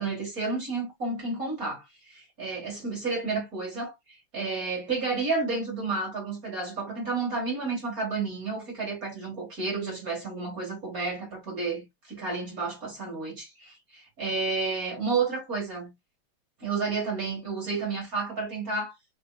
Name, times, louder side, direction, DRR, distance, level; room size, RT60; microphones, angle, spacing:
voice 1, 0.0-15.9 16.6-18.9, right 4 dB, 45° right, 2.0 m, -31 dB
5.4 x 4.0 x 2.2 m
omnidirectional pair, 2.2 m